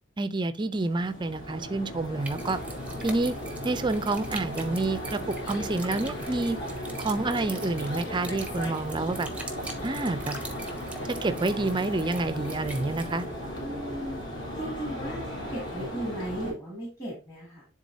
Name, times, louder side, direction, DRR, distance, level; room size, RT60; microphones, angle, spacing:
voice 1, 0.2-2.6 3.0-3.4 3.6-5.2 5.5-6.6 7.0-9.3 9.8-10.3 11.1-13.3, right 2 dB, 25° right, 0.5 m, -28 dB
sound 1, 0.7-16.5, equal, 60° left, 2.8 m, -36 dB
sound 2, 2.2-13.3, right 3 dB, 5° right, 0.8 m, -44 dB
voice 2, 13.6-14.3 14.6-15.2 15.5-17.6, equal, 15° left, 2.4 m, -36 dB
10.5 x 3.8 x 2.7 m
head